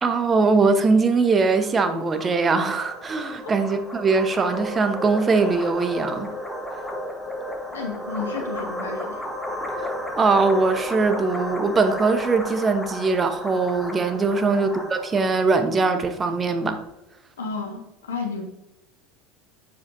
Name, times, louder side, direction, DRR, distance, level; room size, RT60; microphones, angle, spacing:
voice 1, 0.0-6.3 9.8-16.8, right 4 dB, 25° right, 8 dB, 0.9 m, -21 dB
sound 1, 1.1-16.8, left 1 dB, 5° left, 1.3 m, -34 dB
voice 2, 7.7-9.2 14.3-14.7 17.4-18.4, left 5 dB, 80° left, 1 dB, 1.6 m, -32 dB
7.8 x 7.4 x 2.7 m, 0.94 s
figure-of-eight pair, 75°, 0 cm